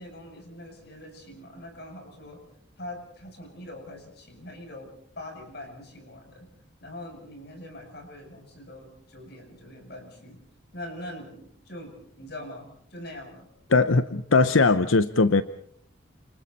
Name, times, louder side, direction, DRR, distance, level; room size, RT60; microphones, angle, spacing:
voice 1, 0.0-2.4 2.8-6.5 6.8-10.4 10.7-13.5, left 1 dB, 55° left, 7.5 m, -43 dB
voice 2, 13.7-15.4, left 3 dB, 85° left, 0.8 m, -20 dB
29.5 x 28.0 x 4.2 m
head